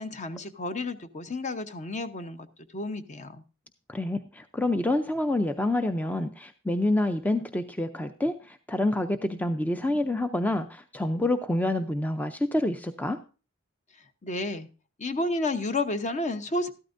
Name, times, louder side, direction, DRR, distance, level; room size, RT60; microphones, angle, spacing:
voice 1, 0.0-2.5 2.7-3.4 14.2-14.7 15.0-16.7, left 2 dB, 35° left, 10 dB, 0.9 m, -31 dB
voice 2, 3.9-13.2, left 1 dB, 5° left, 9 dB, 0.5 m, -27 dB
13.5 x 12.5 x 2.6 m, 0.34 s
head